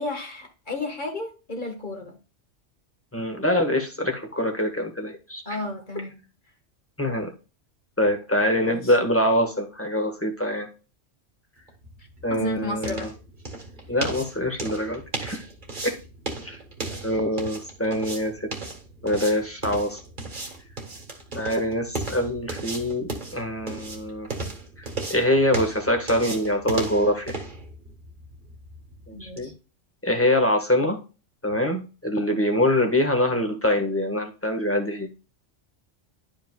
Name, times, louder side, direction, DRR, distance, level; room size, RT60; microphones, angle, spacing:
voice 1, 0.0-2.2 5.5-6.2 8.6-8.9 12.3-13.1 17.2-17.3 29.1-29.5, left 2 dB, 40° left, 3 dB, 1.7 m, -33 dB
voice 2, 3.1-5.6 7.0-7.3 8.0-10.7 12.2-13.1 13.9-15.4 15.8-15.9 16.4-16.6 17.0-18.5 19.0-20.0 21.3-24.3 24.8-27.4 29.1-29.5 30.0-31.0 31.4-35.1, left 1 dB, 10° left, 3 dB, 1.4 m, -24 dB
sound 1, 11.7-29.5, right 3 dB, 40° right, 1.7 m, -36 dB
11.5 x 5.2 x 2.3 m, 0.32 s
omnidirectional pair, 1.3 m